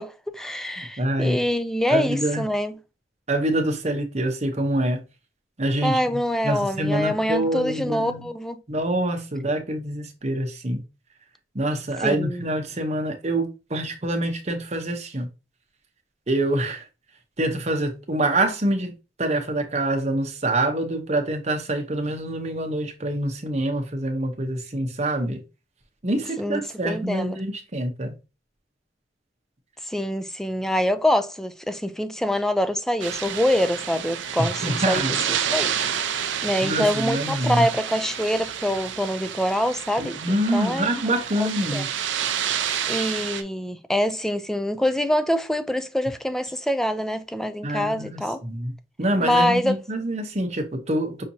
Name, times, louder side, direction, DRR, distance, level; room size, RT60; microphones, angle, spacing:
voice 1, 0.0-2.8 5.8-8.6 12.0-12.4 26.4-27.4 29.8-36.1 36.4-40.9 41.4-41.8 42.9-48.4 49.2-49.8, left 1 dB, ahead, 0.3 m, -25 dB
voice 2, 0.8-1.4 1.9-2.5 3.3-5.0 5.6-8.3 8.7-10.8 11.5-15.3 16.3-16.8 17.4-18.9 19.2-25.4 26.0-28.2 34.6-35.2 36.6-37.7 40.0-41.9 47.6-48.7 49.0-51.2, right 1 dB, 35° right, 0.8 m, -26 dB
sound 1, 33.0-43.4, right 9 dB, 75° right, 0.5 m, -29 dB
5.7 x 2.8 x 2.7 m
head